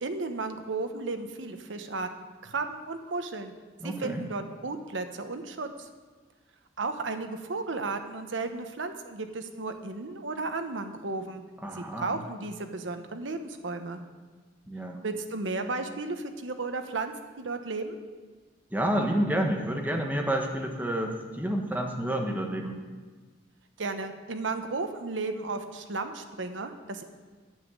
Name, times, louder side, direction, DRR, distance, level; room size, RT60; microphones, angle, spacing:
voice 1, 0.0-2.1 2.4-3.5 3.8-5.9 6.8-11.4 11.8-14.0 15.0-18.0 23.8-27.0, right 3 dB, 85° right, 7 dB, 0.9 m, -34 dB
voice 2, 3.8-4.2 11.6-12.2 14.7-15.0 18.7-22.8, right 1 dB, 10° right, 2 dB, 1.2 m, -29 dB
9.3 x 7.2 x 8.2 m, 1.4 s
head